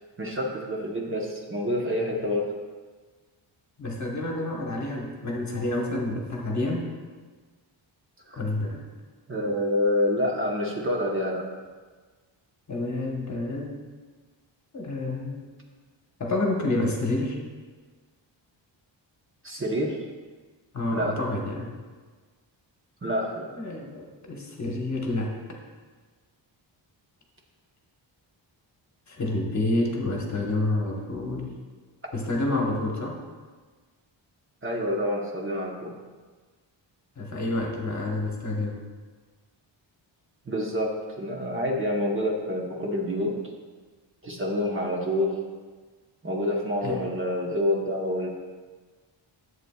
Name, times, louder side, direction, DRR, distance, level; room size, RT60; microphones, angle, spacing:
voice 1, 0.2-2.5 8.3-8.4 9.3-11.5 19.4-20.0 20.9-21.2 23.0-23.5 34.6-35.9 40.5-43.4 44.2-45.4 46.2-48.3, left 1 dB, 25° right, -1 dB, 1.0 m, -27 dB
voice 2, 3.8-6.9 8.3-8.8 12.7-13.7 14.7-15.5 16.2-17.4 20.7-21.7 23.6-25.4 29.1-31.6 32.1-33.2 37.2-38.8 46.8-47.0, left 2 dB, 40° left, 0 dB, 1.1 m, -28 dB
11.0 x 7.8 x 2.3 m, 1.4 s
wide cardioid pair, 150°, 46 cm